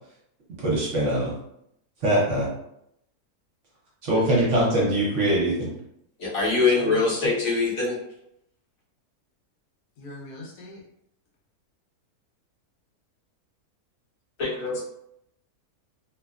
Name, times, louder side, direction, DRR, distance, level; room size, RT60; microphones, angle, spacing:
voice 1, 0.6-1.3 2.0-2.5 4.0-5.7, right 1 dB, 60° right, -4 dB, 0.9 m, -22 dB
voice 2, 4.1-4.5 6.8-7.1 10.0-10.8, left 2 dB, 85° left, -2 dB, 1.2 m, -40 dB
voice 3, 6.2-8.0 14.4-14.8, left 3 dB, 65° left, -5 dB, 1.2 m, -23 dB
2.9 x 2.1 x 2.3 m, 0.77 s
omnidirectional pair, 1.6 m